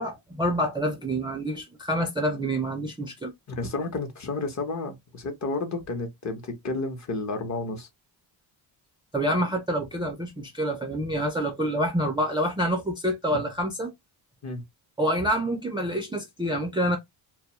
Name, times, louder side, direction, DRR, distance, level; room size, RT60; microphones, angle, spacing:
voice 1, 0.0-3.3 9.1-13.9 15.0-17.0, equal, 10° right, 0.4 m, -27 dB
voice 2, 3.5-7.9 13.3-13.4 14.4-14.6, left 3 dB, 35° left, 0.8 m, -31 dB
2.2 x 2.0 x 2.9 m
cardioid pair, 95°, 48 cm